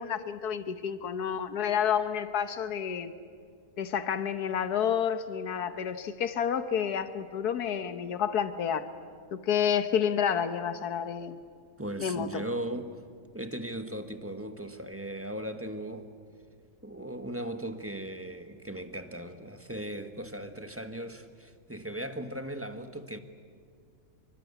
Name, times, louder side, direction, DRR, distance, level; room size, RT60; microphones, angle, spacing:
voice 1, 0.0-3.1 3.8-8.9 9.3-11.4 12.0-12.4, left 8 dB, 80° left, 10 dB, 1.6 m, -29 dB
voice 2, 11.8-13.0 13.3-16.1 16.8-23.2, right 1 dB, 10° right, 7 dB, 1.2 m, -38 dB
26.5 x 24.5 x 8.2 m, 2.2 s
omnidirectional pair, 1.6 m